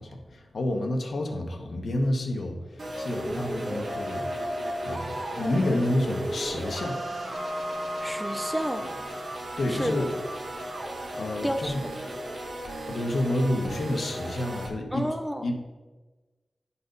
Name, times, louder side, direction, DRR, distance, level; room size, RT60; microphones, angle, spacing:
voice 1, 0.0-4.3 4.8-7.0 9.6-10.1 11.2-11.8 12.9-15.0 15.4-15.5, left 1 dB, 70° left, 2 dB, 1.1 m, -29 dB
sound 1, 2.8-14.7, right 1 dB, 65° right, 1.4 m, -34 dB
voice 2, 8.0-8.9 9.7-10.0 11.4-11.7 14.9-15.5, equal, 5° right, 7 dB, 0.7 m, -30 dB
9.3 x 4.2 x 5.2 m, 1.2 s
wide cardioid pair, 100°, 0 cm